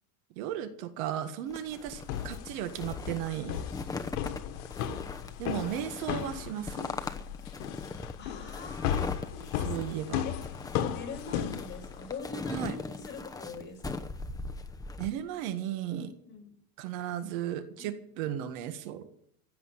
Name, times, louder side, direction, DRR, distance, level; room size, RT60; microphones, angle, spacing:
voice 1, 0.4-3.7 5.4-6.9 9.6-10.2 12.5-12.8 15.0-16.1 16.8-19.1, right 11 dB, 65° right, 9 dB, 1.8 m, -35 dB
sound 1, 1.5-15.1, left 3 dB, 10° left, 0.9 m, -40 dB
sound 2, 1.9-12.2, left 9 dB, 70° left, 1.9 m, -36 dB
voice 2, 8.2-14.0 16.2-16.5 17.8-18.0, left 4 dB, 25° left, 0 dB, 6.8 m, -44 dB
16.0 x 8.0 x 9.0 m, 0.65 s
supercardioid pair, 130°, 44 cm